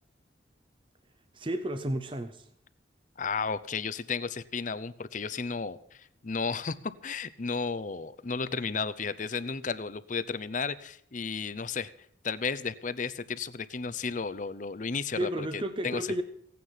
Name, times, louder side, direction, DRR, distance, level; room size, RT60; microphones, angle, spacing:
voice 1, 1.3-2.5 15.2-16.2, right 1 dB, 30° right, 9 dB, 0.7 m, -32 dB
voice 2, 3.2-11.9 12.2-16.2, left 5 dB, 45° left, 15 dB, 0.7 m, -33 dB
16.5 x 9.4 x 5.7 m, 0.71 s
head